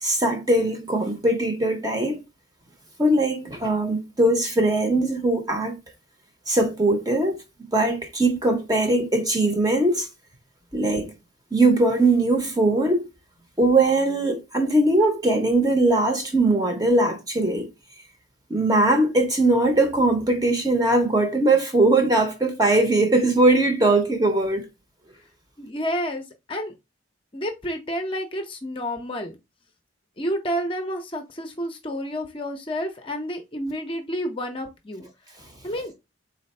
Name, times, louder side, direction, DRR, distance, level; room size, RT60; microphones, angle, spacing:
voice 1, 0.0-2.2 3.0-5.8 6.5-10.1 10.7-11.1 11.5-13.1 13.6-17.7 18.5-24.7, right 2 dB, 20° right, 0.7 m, -20 dB
voice 2, 25.6-26.7 27.3-29.3 30.2-35.1 35.6-35.9, equal, 25° left, 0.6 m, -30 dB
4.0 x 2.5 x 4.2 m
head